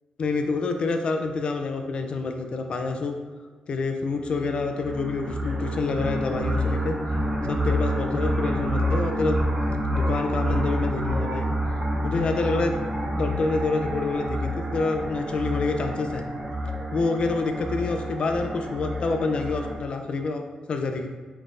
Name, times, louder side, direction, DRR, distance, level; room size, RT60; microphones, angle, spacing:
voice 1, 0.2-3.2 3.7-7.0 7.5-9.4 9.9-11.5 12.0-12.7 13.2-16.3 16.9-21.1, left 3 dB, 45° left, 5 dB, 0.3 m, -27 dB
sound 1, 4.2-19.8, equal, 45° right, 1.2 m, -28 dB
4.2 x 3.2 x 2.4 m, 1.5 s
wide cardioid pair, 155°, 2 cm